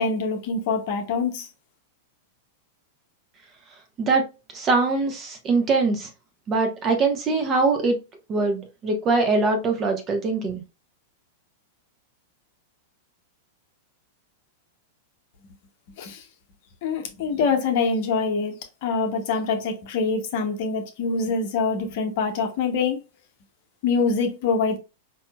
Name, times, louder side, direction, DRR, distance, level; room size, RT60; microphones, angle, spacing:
voice 1, 0.0-1.5 16.0-16.2 16.8-18.5 18.8-23.0 23.8-24.8, left 4 dB, 55° left, 0.9 m, -24 dB
voice 2, 4.5-6.1 6.5-8.0 8.3-10.6, right 3 dB, 30° right, 1.1 m, -22 dB
4.7 x 2.7 x 2.3 m
hypercardioid pair, 105°, 0 cm